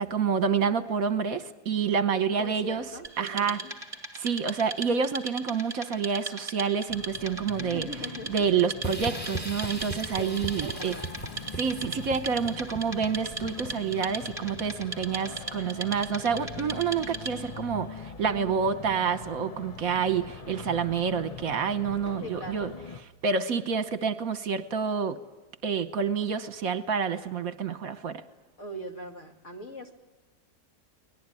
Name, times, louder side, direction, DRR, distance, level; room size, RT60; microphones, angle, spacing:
voice 1, 0.0-2.8 3.2-3.6 4.1-7.9 8.3-10.9 11.6-22.7 23.2-25.2 25.6-28.2, right 6 dB, 65° right, 12 dB, 1.5 m, -28 dB
voice 2, 2.4-3.7 7.6-8.6 10.2-11.1 22.2-22.7 28.6-29.9, equal, 50° left, 4 dB, 2.5 m, -41 dB
Wood, 3.0-17.6, right 4 dB, 20° right, 2.5 m, -39 dB
sound 1, 6.9-23.0, left 5 dB, 30° left, 0.7 m, -43 dB
sound 2, 8.8-14.0, right 1 dB, 5° left, 2.5 m, -38 dB
23.5 x 19.5 x 9.8 m, 1.1 s
omnidirectional pair, 1.7 m